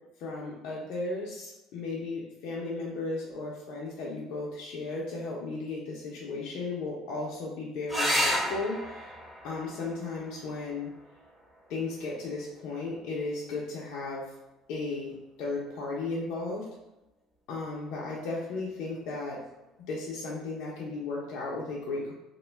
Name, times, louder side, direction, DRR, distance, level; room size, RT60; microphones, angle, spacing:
voice 1, 0.2-9.1 9.4-10.9 11.7-14.2 14.7-16.7 17.5-19.4 19.9-22.1, left 3 dB, 75° left, -4 dB, 0.5 m, -35 dB
sound 1, 7.9-12.9 14.8-15.4 18.9-19.0 19.3-19.4, equal, 10° right, 1.1 m, -34 dB
2.4 x 2.2 x 3.2 m, 0.98 s
cardioid pair, 105°, 0 cm